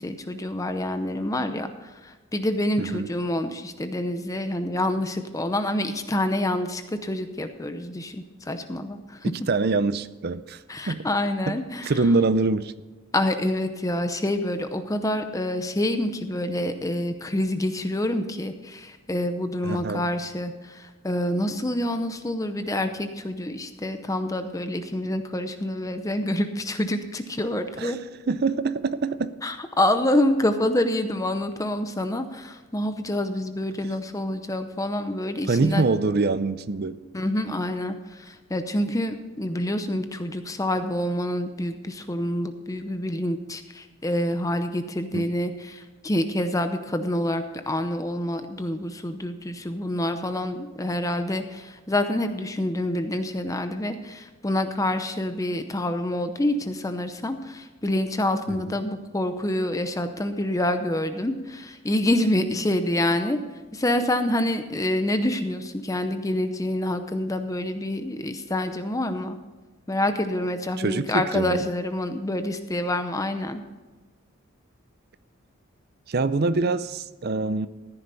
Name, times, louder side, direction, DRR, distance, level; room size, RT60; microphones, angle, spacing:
voice 1, 0.0-9.3 10.7-11.9 13.1-28.0 29.4-35.9 37.1-63.4 63.7-69.4 69.9-73.6, left 1 dB, 15° left, 8 dB, 0.7 m, -27 dB
voice 2, 9.5-10.6 10.9-11.1 11.5-11.6 11.8-12.7 19.6-20.1 27.8-28.0 28.3-29.3 35.5-37.0 45.1-45.3 58.5-58.8 70.8-71.6 76.1-77.7, right 3 dB, 50° right, 14 dB, 0.6 m, -24 dB
15.0 x 9.8 x 4.1 m, 1.3 s
head